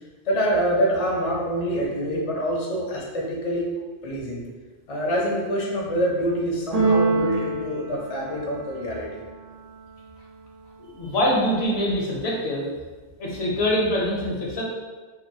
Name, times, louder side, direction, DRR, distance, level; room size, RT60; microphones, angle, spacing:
voice 1, 0.3-3.7 4.0-4.4 4.9-9.2 11.0-11.1, equal, 45° left, -3 dB, 0.5 m, -26 dB
Keyboard (musical), 6.7-8.8, right 3 dB, 60° right, 0.4 m, -24 dB
voice 2, 10.8-12.7 13.2-14.6, equal, 65° left, -3 dB, 0.8 m, -24 dB
2.9 x 2.3 x 2.6 m, 1.3 s
omnidirectional pair, 1.3 m